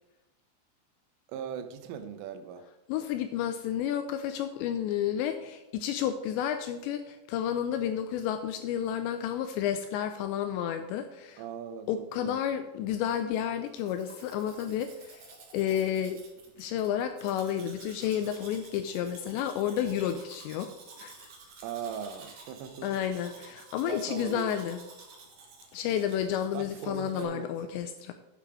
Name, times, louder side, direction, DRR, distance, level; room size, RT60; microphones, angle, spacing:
voice 1, 1.3-2.7 11.4-12.4 21.6-22.9 23.8-24.7 26.5-27.5, right 7 dB, 90° right, 9 dB, 3.4 m, -39 dB
voice 2, 2.9-11.4 11.9-15.2 15.5-16.2 16.6-20.7 21.0-21.3 22.8-24.8 25.7-28.1, left 10 dB, 85° left, 8 dB, 2.6 m, -31 dB
Domestic sounds home sounds, 13.6-27.2, right 4 dB, 65° right, 1.7 m, -52 dB
9.1 x 6.9 x 4.8 m, 1.0 s
omnidirectional pair, 5.5 m